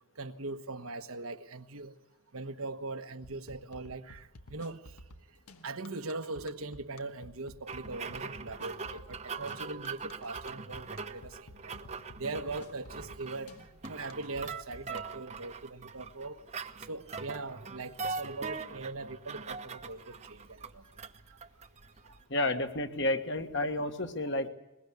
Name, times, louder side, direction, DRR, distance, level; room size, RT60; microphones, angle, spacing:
voice 1, 0.2-2.0 2.3-5.0 5.6-13.5 13.8-16.4 16.9-20.8 22.0-22.1, right 3 dB, 75° right, 8 dB, 1.3 m, -41 dB
sound 1, 3.2-15.0, left 1 dB, 85° left, 1.7 m, -51 dB
sound 2, 7.7-22.2, right 4 dB, 30° right, 0.9 m, -42 dB
voice 2, 22.3-24.5, left 1 dB, 55° left, 6 dB, 1.8 m, -31 dB
22.0 x 21.5 x 8.3 m, 0.94 s
head